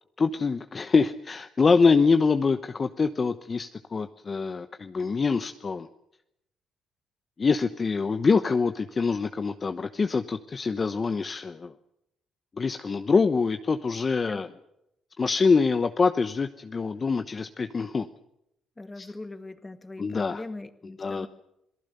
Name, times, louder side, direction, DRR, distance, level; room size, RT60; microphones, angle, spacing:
voice 1, 0.2-5.9 7.4-11.7 12.6-14.5 15.2-18.1 19.0-19.1 20.0-20.4 21.0-21.3, left 4 dB, 35° left, 8 dB, 1.0 m, -25 dB
voice 2, 18.8-21.3, left 2 dB, 15° left, 9 dB, 2.0 m, -40 dB
27.5 x 18.5 x 6.8 m, 0.80 s
cardioid pair, 90°, 0 cm